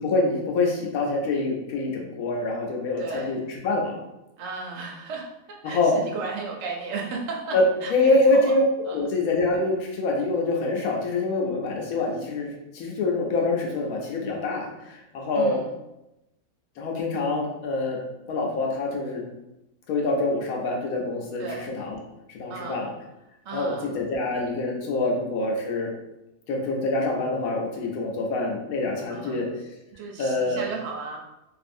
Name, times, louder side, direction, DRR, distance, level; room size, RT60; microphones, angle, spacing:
voice 1, 0.0-4.0 5.6-5.9 7.5-7.6 7.9-8.6 8.9-15.6 16.8-18.0 18.3-19.2 19.9-22.0 22.3-22.9 23.5-25.9 26.5-29.5 30.2-30.6, left 2 dB, 80° left, 0 dB, 1.1 m, -25 dB
voice 2, 3.0-3.4 4.4-8.5 8.8-9.0 15.3-15.7 21.4-21.7 22.5-22.9 23.4-23.9 29.1-29.4 29.9-31.2, right 4 dB, 65° right, -1 dB, 0.7 m, -35 dB
2.6 x 2.5 x 2.5 m, 0.91 s
omnidirectional pair, 1.5 m